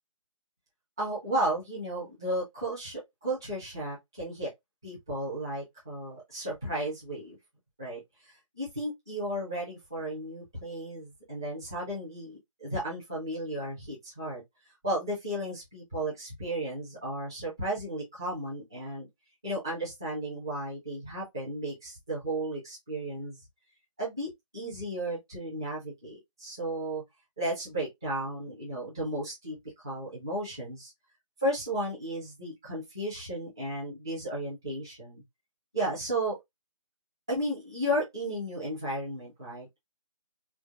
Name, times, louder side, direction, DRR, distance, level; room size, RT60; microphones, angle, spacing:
voice 1, 1.0-4.5 4.8-7.4 7.8-14.4 14.8-19.1 19.4-23.4 24.0-27.0 27.4-30.9 31.4-35.2 35.7-36.4 37.3-39.8, right 1 dB, 5° right, 0.4 m, -34 dB
3.2 x 2.3 x 2.3 m
hypercardioid pair, 170°, 18 cm